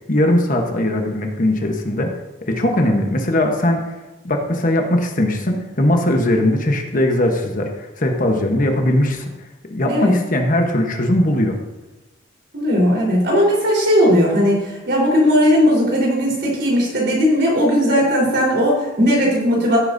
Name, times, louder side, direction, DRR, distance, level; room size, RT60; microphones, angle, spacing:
voice 1, 0.1-2.1 2.4-3.9 4.2-9.3 9.7-11.6, left 1 dB, 45° left, 3 dB, 1.1 m, -19 dB
voice 2, 12.5-19.8, equal, 60° right, -3 dB, 4.1 m, -17 dB
16.0 x 8.7 x 2.7 m, 1.0 s
head